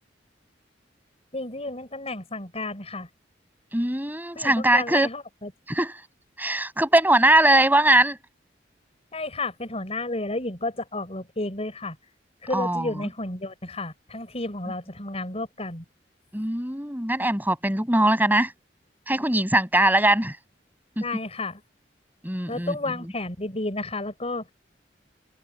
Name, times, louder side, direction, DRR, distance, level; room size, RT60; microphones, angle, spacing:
voice 1, 1.3-3.1 4.3-5.5 9.1-12.0 12.4-15.8 21.0-21.6 22.5-24.5, left 2 dB, 35° left, 6.2 m, -32 dB
voice 2, 3.7-5.1 5.7-5.9 6.4-8.2 12.5-12.9 16.3-18.5 19.1-20.4 21.0-21.1 22.2-22.7, right 1 dB, 10° right, 7.8 m, -21 dB
open air
head